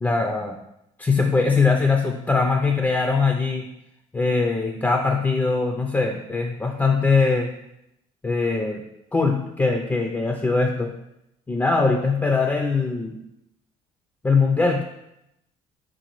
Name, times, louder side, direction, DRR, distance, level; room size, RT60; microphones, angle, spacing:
voice 1, 0.0-0.6 1.0-3.7 4.1-7.5 8.2-8.8 9.1-10.9 11.5-13.2 14.2-14.8, left 4 dB, 15° left, 3 dB, 0.4 m, -21 dB
4.5 x 3.8 x 3.0 m, 0.85 s
cardioid pair, 110°, 14 cm